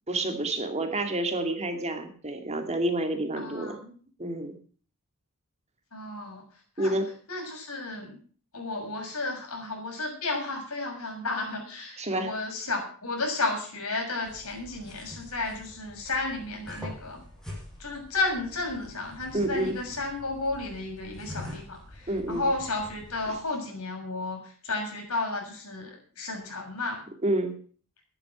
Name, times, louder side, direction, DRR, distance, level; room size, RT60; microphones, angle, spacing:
voice 1, 0.1-4.5 6.8-7.1 12.0-12.4 19.3-19.8 22.1-22.5 23.3-23.4 27.2-27.5, right 1 dB, 30° right, 6 dB, 2.4 m, -29 dB
voice 2, 3.4-3.7 5.9-6.4 6.8-7.0 7.3-8.2 8.5-17.2 17.8-27.0, left 2 dB, 80° left, 1 dB, 6.8 m, -33 dB
sound 1, 14.2-23.4, left 1 dB, ahead, 6.9 m, -45 dB
14.0 x 11.0 x 6.1 m, 0.43 s
head